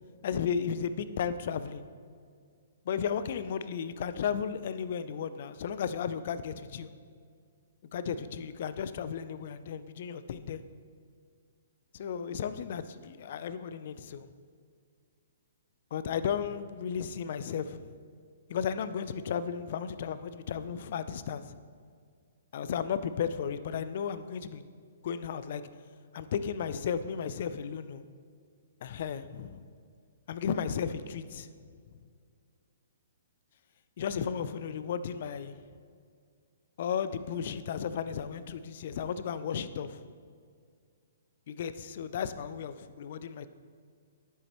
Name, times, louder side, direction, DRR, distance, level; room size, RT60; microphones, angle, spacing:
voice 1, 0.2-1.8 2.9-6.9 7.9-10.6 11.9-14.3 15.9-17.8 18.5-21.5 22.5-24.6 25.0-25.6 26.1-28.0 28.8-29.6 30.3-31.5 34.0-35.6 36.8-40.0 41.5-43.5, left 7 dB, 55° left, 13 dB, 0.4 m, -34 dB
9.9 x 8.0 x 3.0 m, 2.1 s
hypercardioid pair, 130°, 0 cm